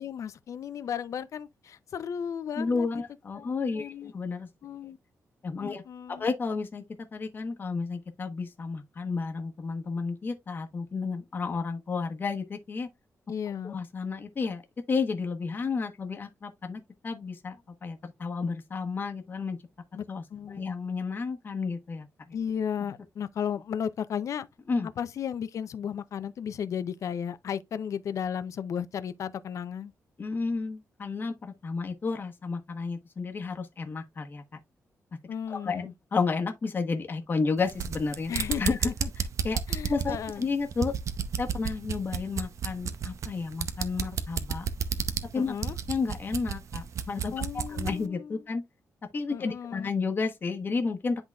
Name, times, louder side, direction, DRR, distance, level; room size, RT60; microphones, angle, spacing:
voice 1, 0.0-3.0 3.3-4.1 4.6-5.0 5.6-6.3 13.3-13.8 19.9-20.1 20.3-20.8 22.3-24.5 25.0-29.9 35.3-35.9 38.3-38.8 39.7-40.5 45.3-45.7 47.3-48.4 49.3-49.9, left 8 dB, 65° left, 0.5 m, -34 dB
voice 2, 2.6-4.5 5.4-5.8 6.2-6.8 7.1-12.9 13.6-14.6 14.9-17.6 17.8-19.6 20.1-22.1 24.7-24.9 30.2-34.4 35.5-38.3 38.6-38.9 39.4-39.6 39.9-40.9 41.4-44.7 45.3-45.5 45.9-47.3 47.7-48.6 49.1-51.2, left 4 dB, 35° left, 1.1 m, -31 dB
sound 1, 37.6-48.0, right 7 dB, 60° right, 0.7 m, -32 dB
10.5 x 3.9 x 2.3 m
wide cardioid pair, 140°, 6 cm